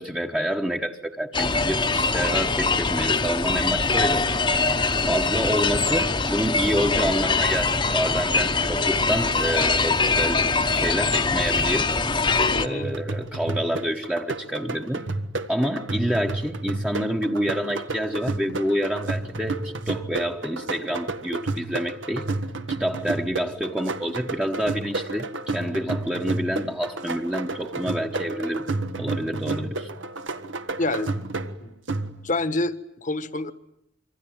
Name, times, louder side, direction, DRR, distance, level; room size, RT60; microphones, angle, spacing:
voice 1, 0.0-4.4 4.9-10.4 10.7-11.9 12.6-15.1 15.5-22.3 22.7-28.7 29.0-29.9, equal, 5° right, 1 dB, 1.2 m, -28 dB
sound 1, 1.3-12.7, left 4 dB, 25° left, 1.1 m, -23 dB
voice 2, 12.5-13.0 30.8-31.1 31.6-31.7 32.2-33.5, left 2 dB, 40° left, 12 dB, 1.4 m, -28 dB
sound 2, 12.8-32.5, right 2 dB, 80° right, 1.6 m, -31 dB
26.5 x 24.5 x 9.0 m, 0.81 s
head